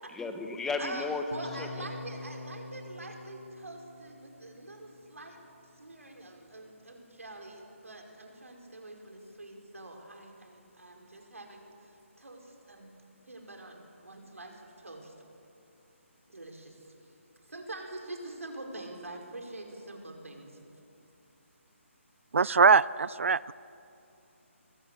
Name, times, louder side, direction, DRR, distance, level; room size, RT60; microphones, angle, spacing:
voice 1, 0.1-1.2 1.6-1.7, left 4 dB, 5° left, 6 dB, 1.3 m, -33 dB
voice 2, 0.8-5.4 5.8-13.0 13.2-15.1 16.3-16.9 17.5-20.6, right 2 dB, 85° right, 2 dB, 5.3 m, -45 dB
sound 1, 1.3-5.4, left 2 dB, 80° left, 2.0 m, -46 dB
voice 3, 22.3-23.5, right 5 dB, 65° right, 21 dB, 0.5 m, -22 dB
24.0 x 20.0 x 8.3 m, 2.7 s
figure-of-eight pair, 150°, 7 cm